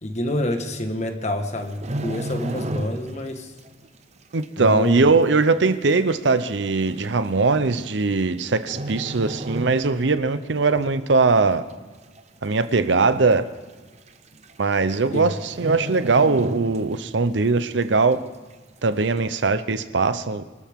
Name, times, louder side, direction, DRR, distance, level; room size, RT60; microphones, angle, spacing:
voice 1, 0.0-3.5 4.6-5.0 15.1-15.3, left 1 dB, 40° left, 6 dB, 1.5 m, -27 dB
sound 1, 1.6-3.3 3.6-3.9 4.4-4.5 5.4-5.5 5.7-5.8 6.7-6.9 8.0-8.4 8.7-10.2 10.6-10.8 11.3-11.8 12.2-12.3 12.5-12.6 13.0-13.1 14.1-14.2 14.4-14.7 15.0-15.1 15.5-17.2 17.5-17.6, right 1 dB, 35° right, 0.8 m, -32 dB
voice 2, 4.3-11.6 12.4-13.5 14.6-18.2 18.8-20.4, right 3 dB, 70° right, 12 dB, 0.7 m, -20 dB
25.0 x 13.0 x 3.7 m, 1.3 s
head